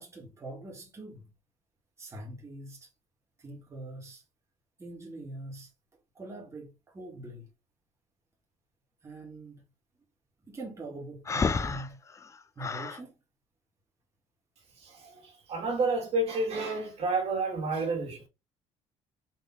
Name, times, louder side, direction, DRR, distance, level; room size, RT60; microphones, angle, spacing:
voice 1, 0.0-1.3 2.0-2.9 3.4-4.2 4.8-5.7 6.2-7.5 9.0-9.6 10.4-12.0 12.6-13.1, right 2 dB, 25° right, 1.8 m, -43 dB
Breathing, 11.3-13.0, left 5 dB, 25° left, 0.5 m, -31 dB
voice 2, 15.5-18.3, right 2 dB, 55° right, 2.1 m, -29 dB
4.4 x 3.2 x 3.6 m
cardioid pair, 105°, 12 cm